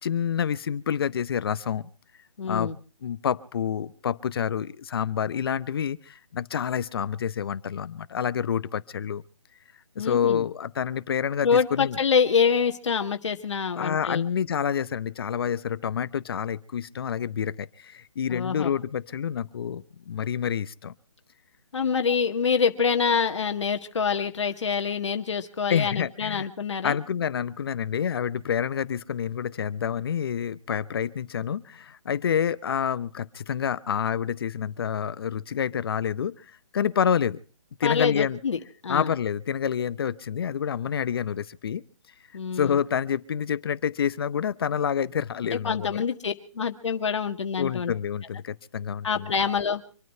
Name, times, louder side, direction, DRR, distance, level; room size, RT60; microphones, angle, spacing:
voice 1, 0.0-1.9 2.5-2.7 3.0-9.2 10.0-12.0 13.8-20.9 25.7-26.5 26.8-36.3 36.7-37.4 37.8-38.4 38.9-41.8 42.5-46.0 47.6-49.3, left 8 dB, 50° left, 15 dB, 1.0 m, -28 dB
voice 2, 2.4-2.8 10.0-10.4 11.4-14.2 18.3-18.7 21.7-27.0 37.8-39.1 42.3-42.8 45.5-47.9 49.0-49.8, left 6 dB, 65° left, 6 dB, 1.8 m, -26 dB
26.0 x 9.3 x 5.6 m, 0.39 s
hypercardioid pair, 155°, 16 cm